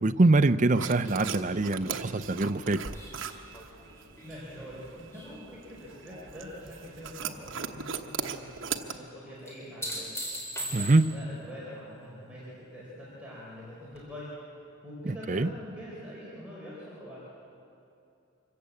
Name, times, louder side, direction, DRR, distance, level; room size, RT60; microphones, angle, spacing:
voice 1, 0.0-2.8 10.7-11.1 15.3-15.5, right 2 dB, 35° right, 10 dB, 0.6 m, -24 dB
sound 1, 0.8-9.0, right 6 dB, 65° right, 1.1 m, -39 dB
sound 2, 2.9-6.4 6.8-7.4 9.5-11.3 13.9-14.0, right 1 dB, 15° left, 4.0 m, -40 dB
voice 2, 4.2-10.1 10.6-14.3 14.8-17.3, equal, 5° right, -7 dB, 4.3 m, -44 dB
25.5 x 15.5 x 8.3 m, 2.6 s
head